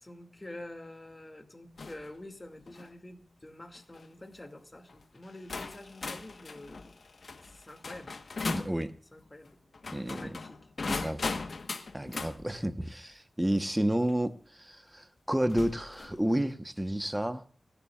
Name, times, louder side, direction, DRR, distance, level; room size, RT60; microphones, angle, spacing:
voice 1, 0.0-6.9 7.5-8.1 9.1-9.6 10.1-10.6, left 1 dB, 25° left, 5 dB, 2.3 m, -47 dB
sound 1, 1.8-2.1 2.6-2.9 3.7-4.0 4.9-5.0 5.5-8.8 9.7-12.4 14.1-14.2 15.5-16.2, left 4 dB, 70° left, 1.2 m, -38 dB
voice 2, 8.4-8.9 9.9-10.3 10.9-11.3 11.9-17.5, right 1 dB, 10° right, 9 dB, 1.0 m, -31 dB
30.0 x 11.5 x 2.4 m, 0.41 s
wide cardioid pair, 75°, 0 cm